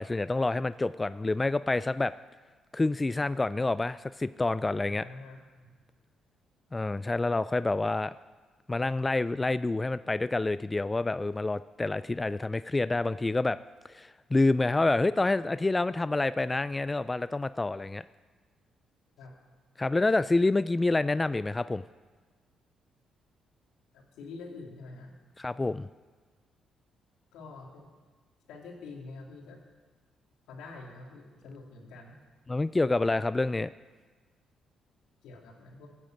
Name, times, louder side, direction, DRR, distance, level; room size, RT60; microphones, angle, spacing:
voice 1, 0.0-2.1 2.7-5.1 6.7-8.1 8.7-13.6 13.9-18.0 19.8-21.8 25.4-25.9 32.5-33.7, left 2 dB, 20° left, 15 dB, 0.3 m, -28 dB
voice 2, 4.8-5.7 19.2-19.3 23.9-25.1 27.3-27.9 28.5-29.6 30.5-32.2 35.2-35.9, left 3 dB, 90° left, 0 dB, 2.7 m, -46 dB
15.0 x 8.9 x 7.8 m, 1.4 s
cardioid pair, 90°, 0 cm